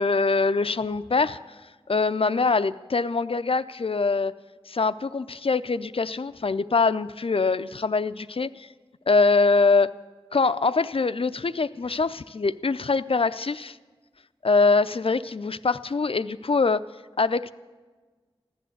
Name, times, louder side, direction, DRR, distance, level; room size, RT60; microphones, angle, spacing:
voice 1, 0.0-1.4 1.9-4.3 4.7-8.7 9.1-9.9 10.3-13.8 14.4-16.8 17.2-17.5, left 4 dB, 65° left, 13 dB, 0.5 m, -23 dB
15.5 x 11.0 x 7.9 m, 1.3 s
wide cardioid pair, 60°, 10 cm